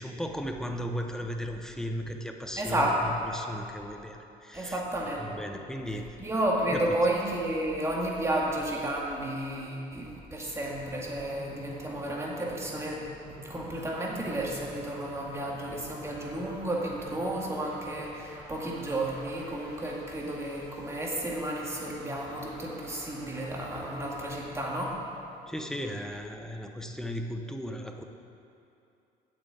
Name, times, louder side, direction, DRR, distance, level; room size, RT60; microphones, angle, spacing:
voice 1, 0.0-4.8 5.2-6.2 6.7-7.1 25.5-28.0, equal, 5° left, 4 dB, 0.8 m, -36 dB
voice 2, 2.6-3.0 4.5-5.3 6.2-13.1 13.4-24.9, right 1 dB, 15° right, -3 dB, 2.1 m, -32 dB
sound 1, 11.0-25.9, right 1 dB, 65° right, 2.9 m, -48 dB
8.2 x 6.7 x 8.4 m, 2.7 s
cardioid pair, 110°, 17 cm